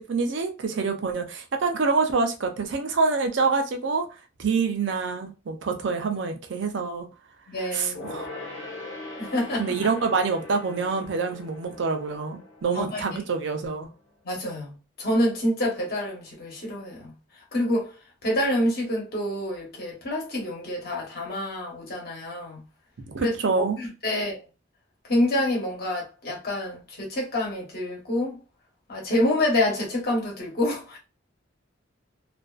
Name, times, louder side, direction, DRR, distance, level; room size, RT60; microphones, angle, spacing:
voice 1, 0.0-4.1 4.4-7.1 7.7-8.3 9.6-13.9 23.1-23.8, right 4 dB, 70° right, 0.5 m, -26 dB
voice 2, 7.5-8.2 9.2-9.6 12.7-13.2 14.2-17.1 17.5-17.9 18.2-22.6 23.2-23.3 23.8-24.4 25.1-28.4 28.9-31.0, left 1 dB, 50° left, 1.0 m, -27 dB
Gong, 7.9-13.8 14.1-14.2, left 2 dB, 85° left, 0.9 m, -41 dB
2.4 x 2.3 x 2.3 m
head